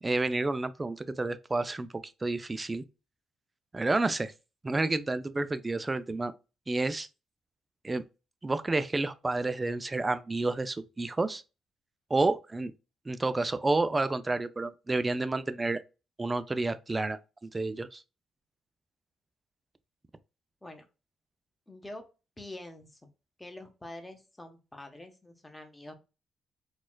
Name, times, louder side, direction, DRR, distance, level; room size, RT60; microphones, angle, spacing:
voice 1, 0.0-2.8 3.7-4.3 4.6-6.3 6.7-7.1 7.8-8.0 8.4-11.4 12.1-12.7 13.1-15.8 16.2-18.0, right 2 dB, 20° right, 0.3 m, -30 dB
voice 2, 21.7-22.0 22.4-23.0 23.4-25.9, left 1 dB, 15° left, 0.8 m, -45 dB
4.1 x 2.4 x 2.2 m
cardioid pair, 90°, 0 cm